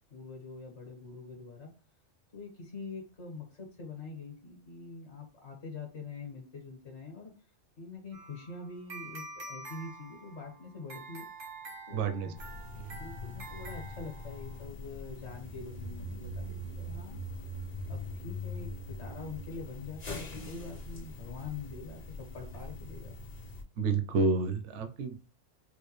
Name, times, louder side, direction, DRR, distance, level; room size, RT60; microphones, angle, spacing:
voice 1, 0.1-1.7 2.3-7.3 7.8-11.3 11.9-12.4 12.9-17.2 17.9-23.1, left 4 dB, 60° left, 1 dB, 1.6 m, -44 dB
sound 1, 8.1-14.6, right 2 dB, 90° right, 1.4 m, -47 dB
voice 2, 11.9-12.3 12.8-13.0 23.8-25.2, right 4 dB, 70° right, 8 dB, 0.9 m, -30 dB
sound 2, 12.4-23.6, left 1 dB, 40° left, 0.7 m, -42 dB
4.5 x 2.2 x 3.0 m, 0.35 s
omnidirectional pair, 1.3 m